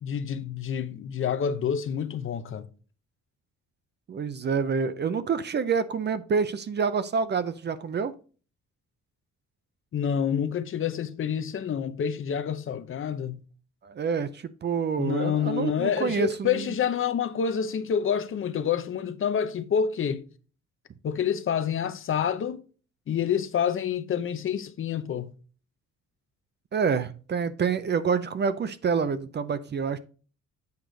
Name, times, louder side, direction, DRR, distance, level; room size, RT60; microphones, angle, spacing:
voice 1, 0.0-2.7 9.9-13.4 15.0-20.2 21.0-22.6 23.1-25.3, left 8 dB, 45° left, 0.6 m, -28 dB
voice 2, 4.1-8.1 13.8-16.7 26.7-30.0, right 5 dB, 35° right, 0.5 m, -27 dB
8.1 x 4.9 x 3.8 m
cardioid pair, 150°, 30 cm